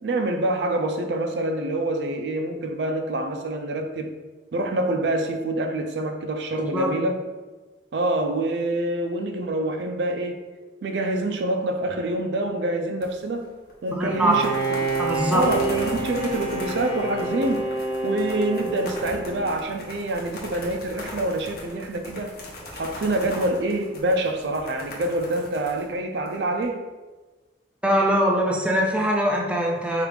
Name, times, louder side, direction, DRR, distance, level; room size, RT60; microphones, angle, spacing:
voice 1, 0.0-4.1 4.5-7.2 7.9-10.4 10.8-13.5 13.8-15.0 15.3-17.7 18.0-22.3 22.7-26.8, right 1 dB, 75° right, 0.4 m, -26 dB
voice 2, 6.6-6.9 13.9-14.4 15.0-15.5 27.8-30.1, equal, 5° right, 0.4 m, -22 dB
sound 1, 13.0-13.7 14.1-26.6, left 1 dB, 55° left, 0.9 m, -39 dB
Bowed string instrument, 14.1-19.7, right 2 dB, 80° left, 1.1 m, -28 dB
4.7 x 2.4 x 3.3 m
head